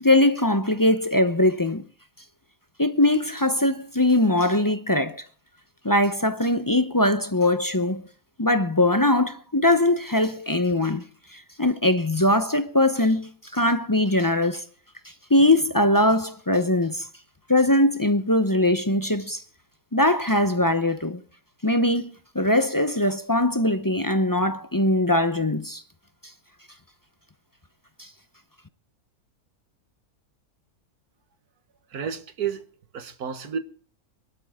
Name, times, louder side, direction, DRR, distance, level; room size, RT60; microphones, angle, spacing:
voice 1, 0.0-1.8 2.8-5.2 5.8-8.0 8.4-11.0 11.3-14.6 15.3-17.1 17.5-19.4 19.9-21.2 21.6-25.8 28.0-28.1, left 1 dB, 20° left, 0.6 m, -21 dB
voice 2, 31.9-32.6 32.9-33.6, right 7 dB, 80° right, 1.9 m, -30 dB
23.0 x 12.5 x 3.6 m
omnidirectional pair, 1.6 m